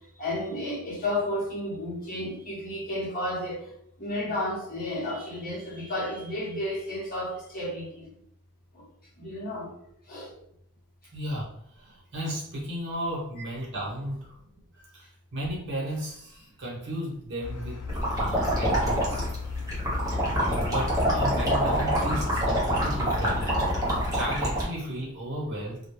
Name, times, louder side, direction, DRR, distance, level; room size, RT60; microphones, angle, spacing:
voice 1, 0.2-3.6 4.0-8.1 8.7-8.8 9.2-9.7 10.1-10.3 13.4-13.5, left 1 dB, 40° left, -4 dB, 0.9 m, -32 dB
voice 2, 11.1-14.4 14.7-17.8 18.1-19.2 20.6-25.8, equal, 55° right, -4 dB, 1.0 m, -34 dB
sound 1, 17.4-24.3, left 5 dB, 90° left, 0.4 m, -36 dB
sound 2, 17.9-24.6, right 1 dB, 15° right, 0.7 m, -26 dB
2.2 x 2.2 x 3.0 m, 0.71 s
head